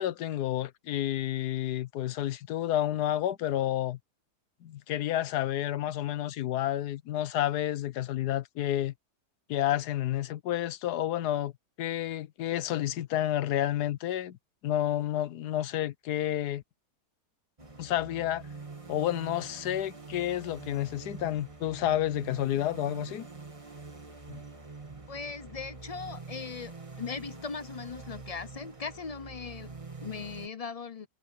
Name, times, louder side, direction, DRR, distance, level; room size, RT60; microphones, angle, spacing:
voice 1, 0.0-4.0 4.6-8.9 9.5-11.5 11.8-14.4 14.6-16.6 17.8-18.4 18.9-23.3 24.3-24.4, left 12 dB, 75° left, 1.3 m, -30 dB
sound 1, 17.6-30.5, right 3 dB, 20° right, 2.0 m, -45 dB
voice 2, 25.1-31.1, left 5 dB, 45° left, 0.5 m, -39 dB
omnidirectional pair, 1.7 m